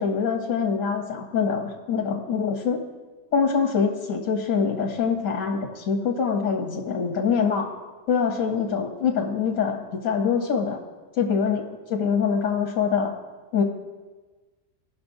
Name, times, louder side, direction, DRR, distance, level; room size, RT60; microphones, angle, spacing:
voice 1, 0.0-2.8 3.3-7.7 8.1-10.8 11.2-13.1 13.5-13.6, left 6 dB, 75° left, 2 dB, 1.2 m, -24 dB
18.0 x 6.0 x 2.6 m, 1.3 s
omnidirectional pair, 1.3 m